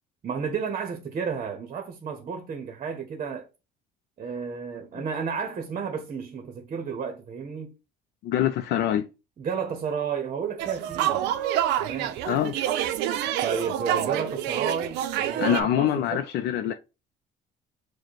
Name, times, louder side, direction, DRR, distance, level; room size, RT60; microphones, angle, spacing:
voice 1, 0.2-3.5 4.2-7.7 9.4-11.3 11.8-12.2 13.4-16.2, right 6 dB, 40° right, 0.8 m, -32 dB
voice 2, 8.2-9.1 12.3-12.5 15.4-16.7, left 11 dB, 75° left, 0.4 m, -24 dB
sound 1, 10.6-15.6, right 11 dB, 90° right, 0.5 m, -27 dB
4.8 x 2.1 x 4.5 m
cardioid pair, 110°, 17 cm